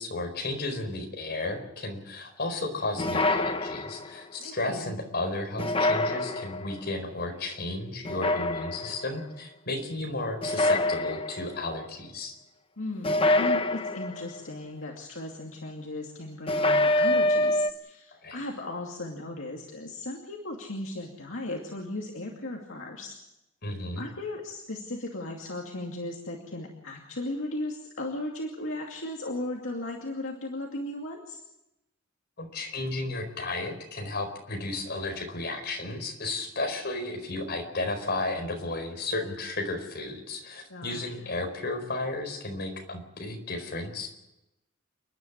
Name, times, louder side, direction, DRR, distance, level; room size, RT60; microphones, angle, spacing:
voice 1, 0.0-12.4 18.1-18.4 23.6-24.1 32.4-44.1, left 2 dB, 55° left, 4 dB, 4.7 m, -33 dB
sound 1, 3.0-4.2 5.6-6.7 8.0-9.0 10.4-11.6 13.0-14.4 16.5-17.7, left 1 dB, 25° left, 0.9 m, -26 dB
voice 2, 4.4-4.9 12.8-23.2 24.0-31.4 40.7-41.0, left 1 dB, 70° left, 0 dB, 2.5 m, -36 dB
29.0 x 11.0 x 9.6 m, 0.92 s
head